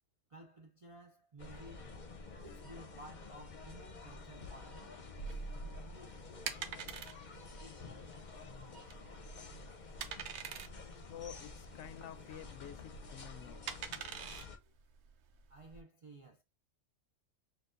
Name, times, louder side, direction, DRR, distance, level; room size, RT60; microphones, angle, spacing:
voice 1, 0.3-1.9 2.4-5.0 15.5-16.4, right 1 dB, 50° right, 0.4 m, -54 dB
sound 1, 1.4-14.6, left 2 dB, 45° left, 0.8 m, -49 dB
sound 2, 5.2-15.8, right 8 dB, 70° right, 0.9 m, -46 dB
voice 2, 11.1-13.6 14.4-14.5, left 10 dB, 75° left, 0.9 m, -49 dB
6.5 x 2.4 x 2.4 m
omnidirectional pair, 1.2 m